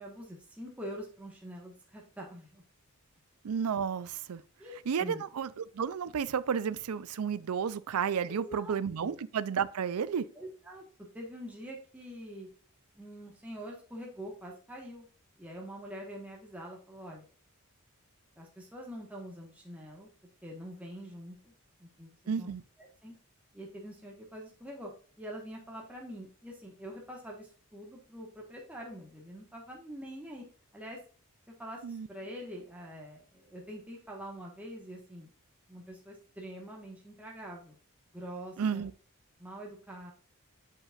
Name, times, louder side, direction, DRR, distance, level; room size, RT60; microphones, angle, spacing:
voice 1, 0.0-2.6 4.6-5.2 8.3-9.1 10.3-10.8 11.1-12.5 12.9-15.1 15.4-17.2 18.4-20.1 20.4-21.5 21.8-22.1 22.4-22.5 22.8-23.1 23.5-24.9 25.2-30.4 30.7-31.0 31.5-35.3 35.7-37.7 38.1-38.9 39.4-40.1, equal, 5° right, 1.3 m, -45 dB
voice 2, 3.4-4.4 4.9-10.2 22.3-22.6 31.8-32.1 38.6-38.9, right 7 dB, 75° right, 0.4 m, -32 dB
7.5 x 5.3 x 2.4 m
head